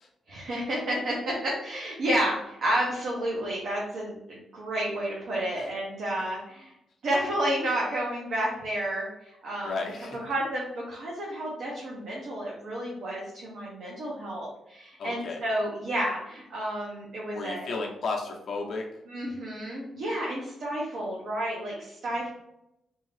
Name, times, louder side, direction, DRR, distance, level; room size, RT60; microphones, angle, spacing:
voice 1, 0.3-6.7 7.0-9.8 10.2-17.7 19.1-22.3, right 1 dB, 60° right, -4 dB, 0.8 m, -31 dB
voice 2, 9.6-10.2 15.0-15.4 17.3-18.9 22.0-22.1, left 3 dB, 50° left, 0 dB, 0.7 m, -33 dB
3.6 x 2.7 x 3.3 m, 0.84 s
wide cardioid pair, 170°, 0 cm